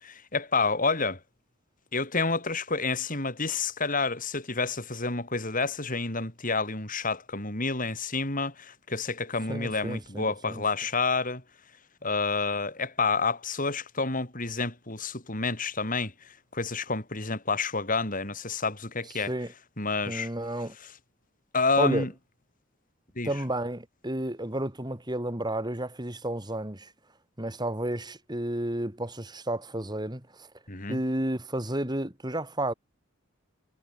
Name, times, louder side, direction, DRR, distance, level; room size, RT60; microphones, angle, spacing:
voice 1, 0.0-1.2 1.9-11.4 12.0-19.3 19.8-20.3 20.8-20.9 21.5-22.1 23.2-23.3 30.7-31.0, left 4 dB, 40° left, 5.5 m, -29 dB
voice 2, 9.5-10.6 19.3-19.5 20.1-20.7 21.8-22.1 23.3-26.9 27.4-30.5 30.9-32.7, right 1 dB, 20° right, 3.5 m, -31 dB
head